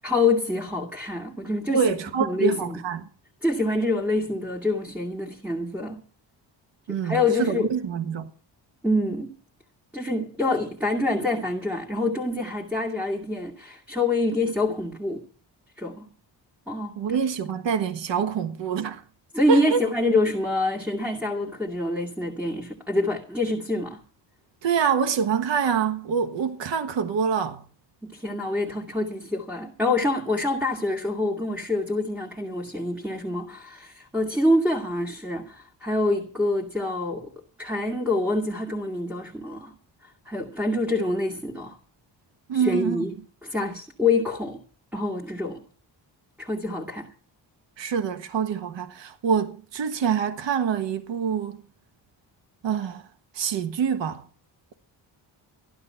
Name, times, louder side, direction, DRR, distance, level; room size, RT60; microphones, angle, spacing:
voice 1, 0.0-2.8 3.4-6.0 7.0-7.7 8.8-9.4 9.9-15.3 15.8-16.1 16.7-17.2 19.3-24.0 28.0-37.3 37.6-39.7 40.3-41.8 42.5-44.6 44.9-45.6 46.4-47.1, left 2 dB, 5° right, 2.4 m, -26 dB
voice 2, 1.7-3.0 6.9-8.3 17.0-19.0 19.5-19.8 24.6-27.6 42.5-43.0 47.8-51.6 52.6-53.0 53.3-54.2, right 7 dB, 80° right, 1.4 m, -25 dB
15.0 x 12.0 x 5.8 m
cardioid pair, 105°, 44 cm